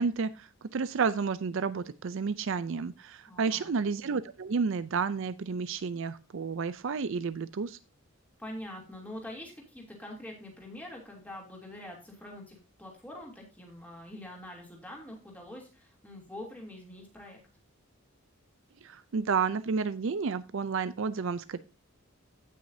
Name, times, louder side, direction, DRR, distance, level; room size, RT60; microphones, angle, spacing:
voice 1, 0.0-7.8 18.8-21.6, right 5 dB, 60° right, 14 dB, 0.4 m, -31 dB
voice 2, 3.3-3.7 8.4-17.4, left 1 dB, 5° left, -1 dB, 2.8 m, -45 dB
15.5 x 6.2 x 2.7 m, 0.30 s
head